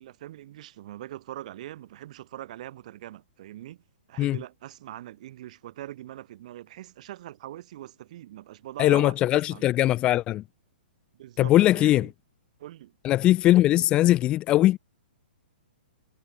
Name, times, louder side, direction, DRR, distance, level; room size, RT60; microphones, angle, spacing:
voice 1, 0.0-3.8 4.1-10.0 11.1-12.1 12.6-13.0, right 14 dB, 40° right, 3.8 m, -42 dB
voice 2, 8.8-10.4 11.4-12.1 13.0-14.8, left 14 dB, 15° left, 0.8 m, -20 dB
hypercardioid pair, 165°, 6 cm